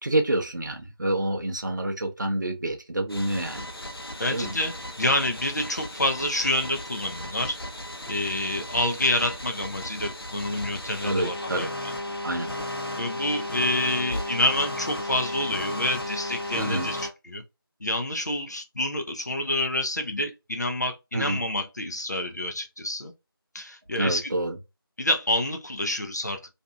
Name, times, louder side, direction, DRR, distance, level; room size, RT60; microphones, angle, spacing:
voice 1, 0.0-3.6 4.3-4.5 11.0-11.7 12.2-12.5 16.6-16.9 21.1-21.4 24.0-24.6, right 1 dB, 50° right, 0.6 m, -27 dB
sound 1, 3.1-17.1, left 1 dB, 75° left, 0.8 m, -35 dB
voice 2, 4.2-7.6 8.1-11.9 13.0-17.4 17.8-23.1 23.5-24.3 25.0-26.5, left 1 dB, 45° left, 0.5 m, -28 dB
2.7 x 2.5 x 2.2 m
figure-of-eight pair, 170°, 13 cm